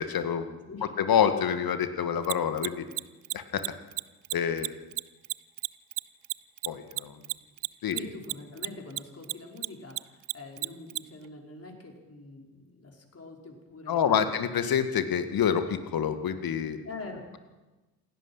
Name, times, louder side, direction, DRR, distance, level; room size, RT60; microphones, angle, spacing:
voice 1, 0.0-0.5 1.0-2.8 3.3-3.6 4.3-4.7 6.7-7.2 7.8-8.0 13.9-16.8, left 8 dB, 45° left, 9 dB, 2.1 m, -27 dB
Mechanisms, 2.2-9.0 9.2-11.0, right 30 dB, 60° right, 0.7 m, -31 dB
voice 2, 7.9-14.4 16.8-17.4, left 3 dB, 30° left, 1 dB, 5.5 m, -44 dB
28.0 x 17.0 x 5.8 m, 1.2 s
figure-of-eight pair, 45°, 47 cm